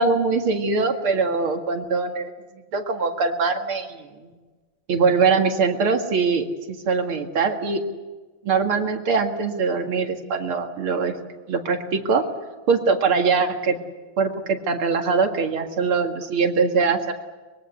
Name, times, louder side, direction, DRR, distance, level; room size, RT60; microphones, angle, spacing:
voice 1, 0.0-2.3 2.7-4.3 4.9-7.8 8.4-11.1 11.5-12.3 12.7-13.8 14.2-17.1, right 4 dB, 80° right, 4 dB, 2.9 m, -22 dB
24.5 x 22.0 x 8.2 m, 1.3 s
omnidirectional pair, 2.3 m